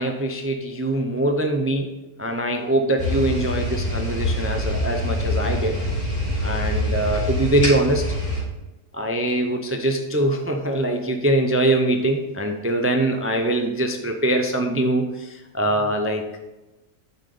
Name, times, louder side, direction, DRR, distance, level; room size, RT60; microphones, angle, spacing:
voice 1, 0.0-1.9 2.2-5.8 6.4-8.1 8.9-16.2, right 1 dB, 20° right, 4 dB, 0.3 m, -23 dB
sound 1, 3.0-8.4, left 1 dB, 40° left, 3.8 m, -25 dB
9.4 x 6.8 x 3.8 m, 1.1 s
omnidirectional pair, 1.3 m